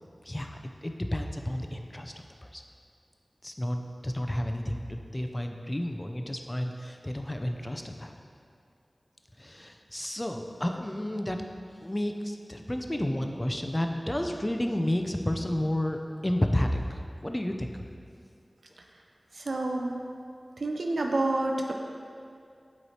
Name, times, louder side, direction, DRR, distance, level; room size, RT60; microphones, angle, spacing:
voice 1, 0.3-2.6 3.4-8.1 9.4-11.4 11.8-17.7, left 1 dB, 25° left, 4 dB, 0.5 m, -31 dB
voice 2, 19.5-20.0 20.6-21.7, right 2 dB, 85° right, 2 dB, 0.4 m, -28 dB
7.8 x 3.1 x 4.2 m, 2.4 s
wide cardioid pair, 40°, 0 cm